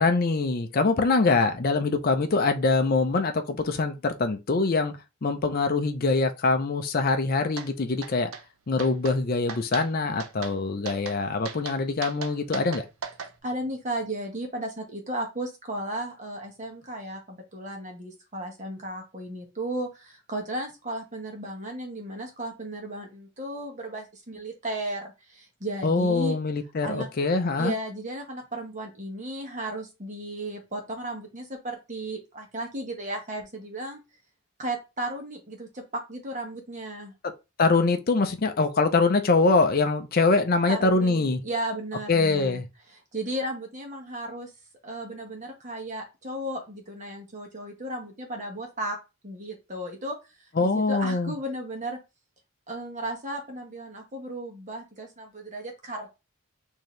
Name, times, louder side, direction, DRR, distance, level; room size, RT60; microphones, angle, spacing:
voice 1, 0.0-4.9 5.2-8.3 8.7-12.8 25.8-27.7 37.6-41.4 42.1-42.7 50.6-51.3, left 3 dB, 40° left, 0.5 m, -24 dB
sound 1, 7.6-7.7 8.0-8.4 8.8-9.2 9.5-9.9 10.2-10.5 10.9-11.2 11.4-13.3, right 6 dB, 70° right, 0.5 m, -37 dB
voice 2, 13.4-26.4 26.8-27.1 27.6-34.0 34.6-35.8 36.1-37.1 40.7-42.6 42.9-44.5 44.8-49.0 49.2-52.0 52.7-56.1, right 1 dB, 35° right, 1.1 m, -35 dB
4.7 x 2.7 x 3.1 m
head